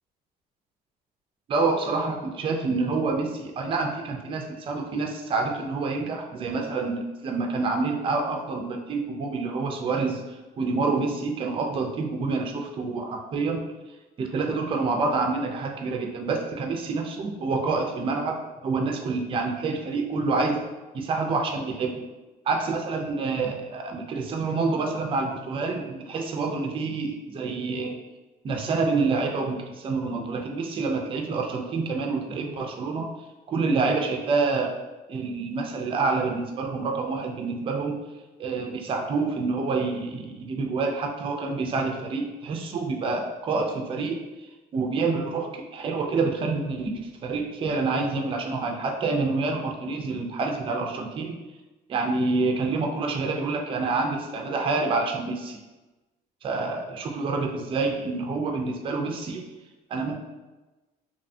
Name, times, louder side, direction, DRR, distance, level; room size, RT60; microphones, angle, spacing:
voice 1, 1.5-13.6 14.2-20.6 20.9-22.0 22.5-28.0 28.4-33.1 33.5-34.7 35.1-38.0 38.4-46.9 47.2-51.4 51.9-55.6 56.4-59.4 59.9-60.2, right 3 dB, 30° right, 3 dB, 0.3 m, -27 dB
2.7 x 2.1 x 2.6 m, 1.1 s
cardioid pair, 110°, 17 cm